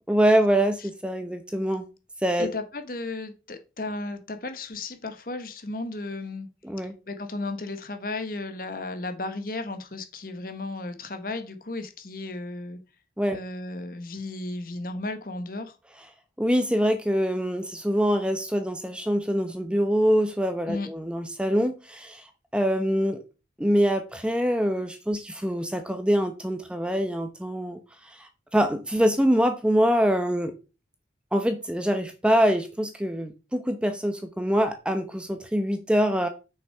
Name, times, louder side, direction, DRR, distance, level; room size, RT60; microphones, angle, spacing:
voice 1, 0.1-1.9 2.2-2.5 6.6-6.9 13.2-13.4 16.4-22.2 22.5-23.2 23.6-27.8 28.1-30.5 31.3-36.3, equal, 5° right, 7 dB, 0.7 m, -24 dB
voice 2, 2.4-6.5 7.1-12.8 13.3-15.7 20.7-20.9, left 2 dB, 50° left, 8 dB, 1.1 m, -34 dB
6.4 x 5.7 x 4.5 m, 0.31 s
head